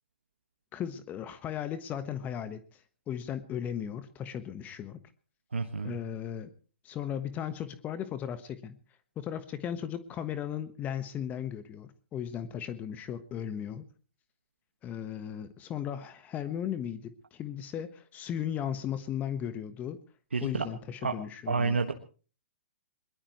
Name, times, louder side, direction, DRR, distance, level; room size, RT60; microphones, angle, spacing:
voice 1, 0.7-5.0 5.8-6.5 6.8-8.8 9.2-13.9 14.8-20.0 20.4-21.8, left 9 dB, 25° left, 12 dB, 1.3 m, -36 dB
voice 2, 5.5-6.0 20.3-20.6 21.0-21.1 21.5-21.9, right 4 dB, 85° right, 5 dB, 1.6 m, -29 dB
22.0 x 21.0 x 3.1 m, 0.37 s
hypercardioid pair, 120°, 6 cm